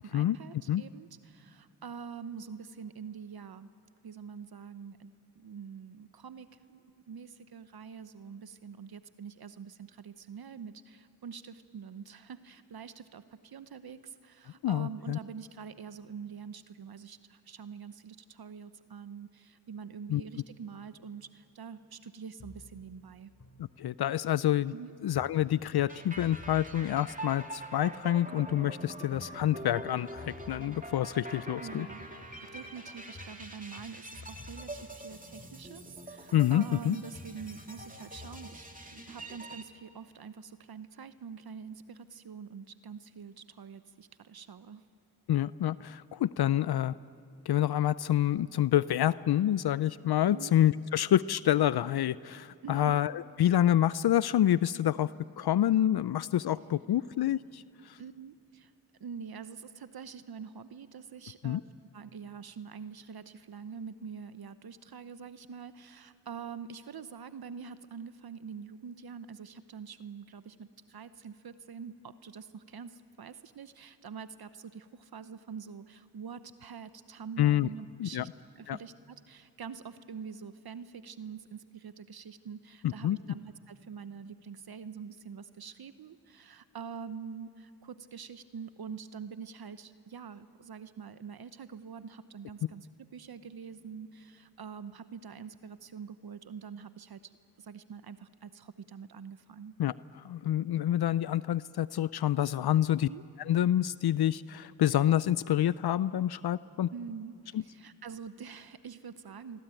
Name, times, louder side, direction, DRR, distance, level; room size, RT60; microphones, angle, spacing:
voice 1, 0.0-3.7 4.0-6.8 7.1-23.3 24.7-24.9 31.3-32.1 32.5-44.8 50.3-50.5 52.6-53.0 58.0-58.7 59.0-61.6 61.9-78.3 78.6-97.3 97.6-99.7 103.0-103.2 106.9-109.6, right 6 dB, 65° right, 12 dB, 1.0 m, -45 dB
voice 2, 14.6-15.2 20.1-20.2 23.8-24.7 25.0-31.9 36.3-37.0 45.3-46.9 47.5-55.1 55.4-58.0 61.4-61.6 77.4-77.7 78.0-78.3 78.7-78.8 82.8-83.2 99.8-103.1 103.5-106.9 107.5-107.6, left 12 dB, 70° left, 17 dB, 0.5 m, -27 dB
sound 1, 22.4-24.3 25.1-28.2 29.1-32.2 33.1-36.2 37.1-38.5, left 2 dB, 45° left, 3.9 m, -52 dB
sound 2, 25.9-39.6, right 2 dB, 20° right, 2.6 m, -45 dB
26.5 x 23.0 x 9.1 m, 2.6 s
cardioid pair, 45°, 40 cm